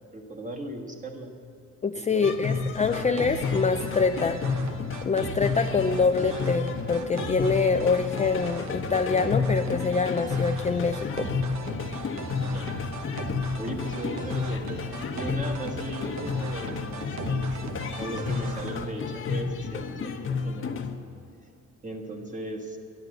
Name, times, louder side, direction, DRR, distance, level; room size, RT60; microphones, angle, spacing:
voice 1, 0.1-1.3 1.9-2.3 12.4-12.8 13.6-20.8 21.8-22.8, right 1 dB, 25° right, 2 dB, 1.6 m, -37 dB
voice 2, 1.8-4.4 5.0-11.3, left 4 dB, 25° left, 7 dB, 0.4 m, -25 dB
sound 1, 2.2-21.0, left 5 dB, 45° left, 1.0 m, -31 dB
sound 2, 2.2-18.9, right 4 dB, 65° right, 1.1 m, -39 dB
11.5 x 11.0 x 7.8 m, 2.6 s
cardioid pair, 125°, 30 cm